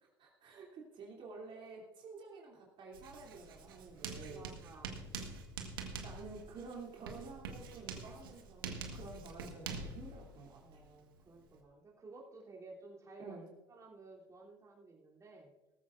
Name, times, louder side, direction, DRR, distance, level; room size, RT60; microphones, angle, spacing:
voice 1, 0.2-4.4 6.0-10.8 13.2-13.5, right 4 dB, 45° right, -2 dB, 2.9 m, -50 dB
Writing, 2.9-11.6, right 4 dB, 80° right, 1.5 m, -46 dB
voice 2, 4.3-5.0 10.6-15.5, right 3 dB, 25° right, -2 dB, 3.2 m, -55 dB
18.5 x 14.0 x 2.6 m, 1.1 s
hypercardioid pair, 65°, 12 cm